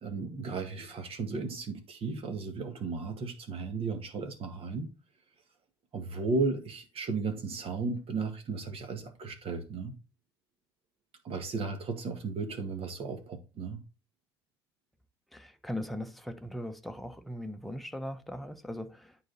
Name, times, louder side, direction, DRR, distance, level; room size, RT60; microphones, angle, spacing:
voice 1, 0.0-4.9 5.9-9.9 11.2-13.8, right 4 dB, 45° right, 1.8 m, -35 dB
voice 2, 15.3-19.2, left 1 dB, ahead, 1.0 m, -39 dB
9.4 x 4.1 x 4.0 m
hypercardioid pair, 60°, 13 cm